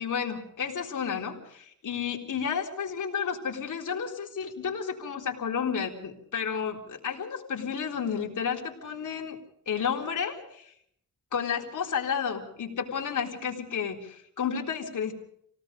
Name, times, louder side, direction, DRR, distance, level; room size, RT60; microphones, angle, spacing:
voice 1, 0.0-9.4 9.7-10.7 11.3-15.1, left 7 dB, 60° left, 0 dB, 3.9 m, -31 dB
28.5 x 18.0 x 5.3 m, 0.69 s
wide cardioid pair, 135°, 35 cm